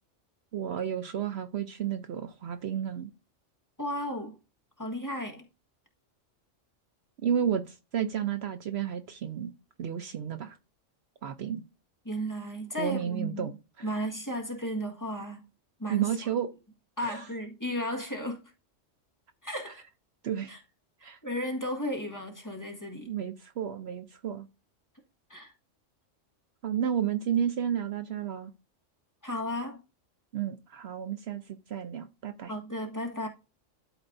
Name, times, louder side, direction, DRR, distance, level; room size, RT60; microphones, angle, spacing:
voice 1, 0.5-3.1 7.2-9.5 9.8-10.6 11.2-11.6 12.8-13.9 15.9-16.5 17.0-17.2 20.2-20.5 21.0-21.2 23.1-24.5 26.6-28.5 30.3-32.5, right 9 dB, 65° right, 0.9 m, -32 dB
voice 2, 3.8-4.4 4.8-5.4 12.0-13.5 13.8-15.4 15.8-16.1 17.0-18.4 19.4-19.8 20.5-20.6 21.0-23.1 25.3-25.5 29.2-29.8 32.5-33.3, equal, 15° left, 1.5 m, -34 dB
12.5 x 4.3 x 2.6 m
omnidirectional pair, 1.3 m